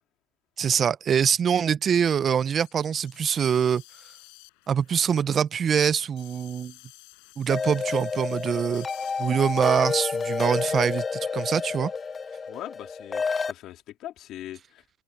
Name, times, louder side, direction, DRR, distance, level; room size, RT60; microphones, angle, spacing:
voice 1, 0.6-3.8 4.7-6.7 7.4-8.9 9.2-11.9, right 7 dB, 35° right, 0.5 m, -24 dB
sound 1, 2.6-12.5, left 37 dB, 75° left, 4.5 m, -53 dB
sound 2, 7.5-13.5, left 5 dB, 25° left, 0.3 m, -30 dB
voice 2, 12.5-14.8, left 13 dB, 55° left, 2.7 m, -41 dB
supercardioid pair, 100°, 0 cm